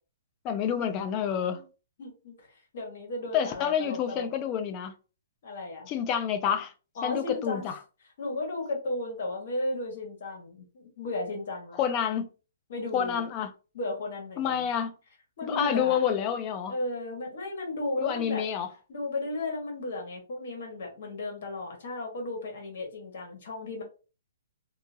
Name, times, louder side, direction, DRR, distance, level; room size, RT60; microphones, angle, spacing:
voice 1, 0.4-1.6 3.3-4.9 5.9-6.7 7.0-7.8 11.8-12.3 12.9-13.5 14.4-14.9 15.4-16.7 18.0-18.7, left 8 dB, 20° left, 0.3 m, -28 dB
voice 2, 2.0-2.5 2.7-4.3 5.4-5.9 7.0-7.6 8.2-11.8 12.7-13.2 13.7-14.7 15.4-16.0 16.7-18.4 18.9-23.8, left 2 dB, 55° left, 1.2 m, -34 dB
2.8 x 2.3 x 2.7 m
hypercardioid pair, 165°, 0 cm